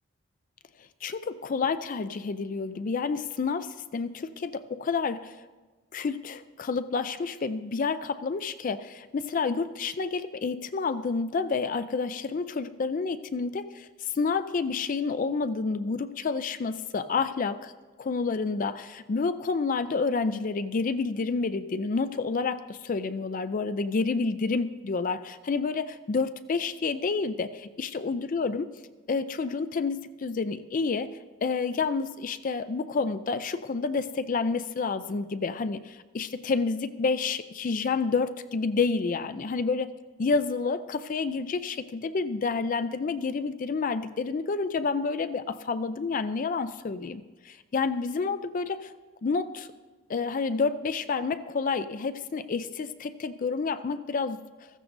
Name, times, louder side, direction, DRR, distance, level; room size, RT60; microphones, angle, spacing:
voice 1, 1.0-5.4 5.9-17.7 18.0-28.7 29.1-31.1 31.4-39.9 40.2-48.9 49.2-49.7 50.1-54.7, left 4 dB, 40° left, 12 dB, 0.4 m, -29 dB
15.5 x 14.5 x 2.6 m, 1.3 s
head